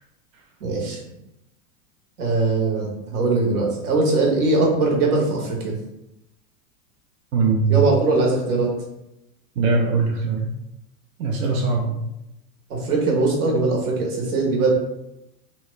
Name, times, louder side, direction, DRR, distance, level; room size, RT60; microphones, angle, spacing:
voice 1, 0.6-1.0 2.2-5.7 7.7-8.7 12.7-14.7, right 3 dB, 80° right, -1 dB, 1.2 m, -21 dB
voice 2, 7.3-7.8 9.6-10.5 11.2-12.0, right 4 dB, 65° right, 0 dB, 0.7 m, -21 dB
3.0 x 2.2 x 3.1 m, 0.88 s
hypercardioid pair, 120°, 45 cm